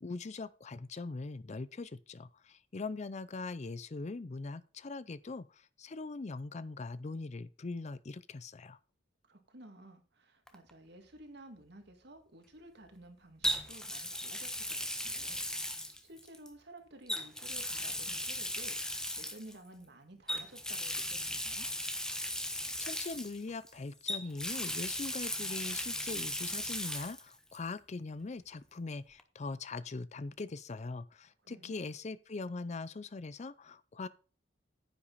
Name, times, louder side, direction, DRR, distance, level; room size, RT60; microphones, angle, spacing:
voice 1, 0.0-8.8 22.5-34.1, left 3 dB, 40° left, 0.5 m, -41 dB
voice 2, 9.3-15.4 16.0-21.7 31.4-31.8, right 1 dB, 65° right, 2.2 m, -54 dB
Water tap faucet, 10.5-10.7 13.4-16.5 17.1-19.5 20.3-23.7 24.1-27.2 27.5-27.6 29.2-29.3, left 1 dB, 5° left, 1.1 m, -37 dB
10.0 x 8.7 x 4.1 m
head